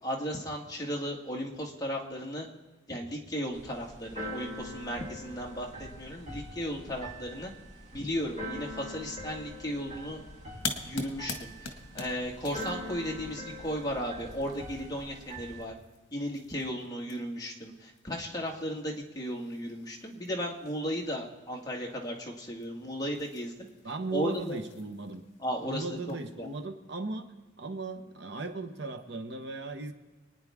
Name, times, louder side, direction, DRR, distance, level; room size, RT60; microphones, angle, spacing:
voice 1, 0.0-2.5 2.9-7.5 7.9-10.2 10.8-15.7 16.1-23.7 24.1-24.6 25.4-26.5, equal, 20° left, -1 dB, 1.8 m, -35 dB
Keyboard (musical), 3.5-15.6, equal, 35° right, 3.3 m, -43 dB
sound 1, 10.6-26.6, left 4 dB, 60° left, 1.8 m, -46 dB
voice 2, 23.8-25.2 25.6-29.9, right 3 dB, 60° right, 7 dB, 1.0 m, -37 dB
26.0 x 9.7 x 3.6 m, 1.2 s
head